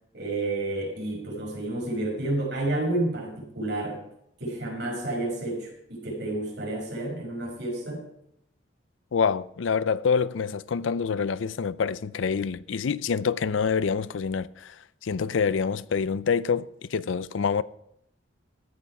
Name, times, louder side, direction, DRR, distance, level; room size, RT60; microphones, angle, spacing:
voice 1, 0.1-4.0 4.4-8.0, right 2 dB, 65° right, 5.5 m, -30 dB
voice 2, 9.1-14.8 15.0-17.6, left 6 dB, 85° left, 0.5 m, -26 dB
14.0 x 9.4 x 4.8 m
head